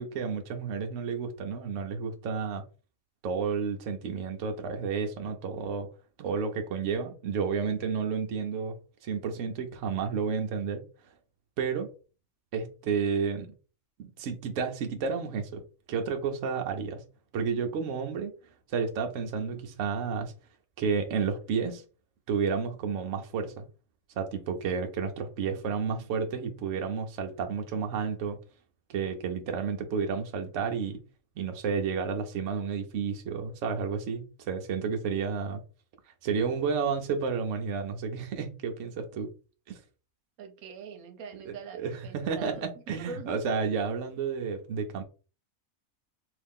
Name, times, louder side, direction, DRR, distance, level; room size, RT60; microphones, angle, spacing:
voice 1, 0.0-2.6 3.2-5.9 6.2-8.7 9.0-10.8 11.6-11.9 12.5-13.5 14.2-15.6 15.9-17.0 17.3-18.3 18.7-20.3 20.8-21.8 22.3-23.6 24.2-28.4 28.9-31.0 31.4-35.6 36.2-39.3 39.7-39.8 41.5-45.0, right 6 dB, 65° right, 1.0 m, -31 dB
voice 2, 40.4-43.4, right 5 dB, 85° right, 1.2 m, -43 dB
3.1 x 2.8 x 3.6 m
omnidirectional pair, 1.5 m